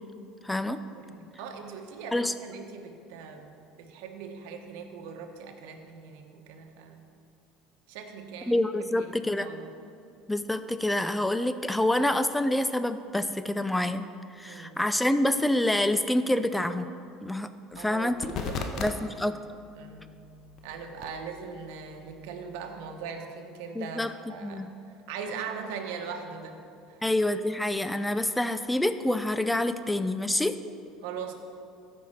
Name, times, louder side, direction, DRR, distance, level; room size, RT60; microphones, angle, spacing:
voice 1, 0.4-0.8 2.1-2.3 8.5-9.5 10.3-14.1 14.3-16.9 17.2-18.3 18.8-19.4 23.8-24.1 24.4-24.7 27.0-30.6, left 1 dB, 5° left, 11 dB, 0.5 m, -27 dB
voice 2, 0.9-3.5 3.8-7.0 7.9-8.6 9.0-9.1 9.4-9.7 14.5-14.8 17.8-19.1 19.7-20.2 20.6-24.7 25.1-26.6 26.9-27.0 31.0-31.3, right 6 dB, 80° right, 4 dB, 1.1 m, -40 dB
sound 1, 17.7-19.0 19.3-23.0, left 5 dB, 50° left, 0.9 m, -40 dB
14.0 x 5.5 x 4.3 m, 2.5 s
supercardioid pair, 100°, 0 cm